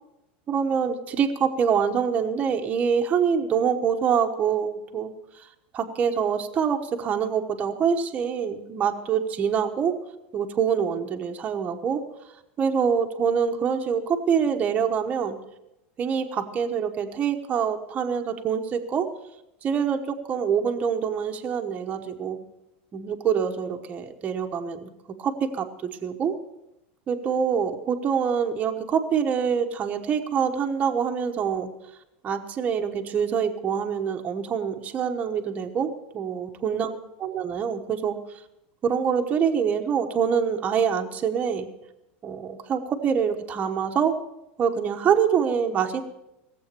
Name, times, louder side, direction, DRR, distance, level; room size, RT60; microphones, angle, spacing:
voice 1, 0.5-5.1 5.7-9.9 10.3-12.0 12.6-15.4 16.0-19.1 19.6-22.4 22.9-24.9 25.2-26.3 27.1-31.7 32.2-36.9 37.2-38.2 38.8-41.7 42.2-44.1 44.6-46.0, right 7 dB, 25° right, 4 dB, 1.1 m, -25 dB
17.0 x 7.8 x 6.8 m, 0.88 s
supercardioid pair, 155°, 6 cm